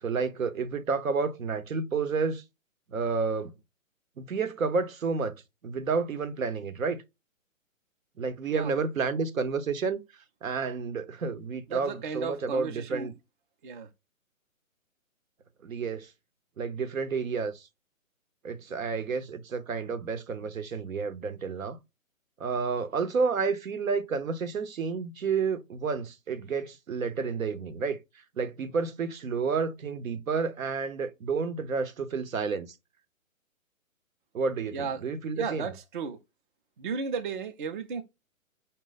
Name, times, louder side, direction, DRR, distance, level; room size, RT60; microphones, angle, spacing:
voice 1, 0.0-2.4 2.9-3.5 4.2-7.0 8.2-10.0 10.4-13.1 15.6-16.1 16.6-17.7 18.4-21.8 22.4-28.0 28.4-32.7 34.3-35.7, right 5 dB, 75° right, 0.9 m, -30 dB
voice 2, 11.7-13.1 13.6-13.9 34.7-35.1 35.4-36.2 36.8-38.0, right 5 dB, 40° right, 0.5 m, -34 dB
5.4 x 2.2 x 3.9 m
hypercardioid pair, 150°, 41 cm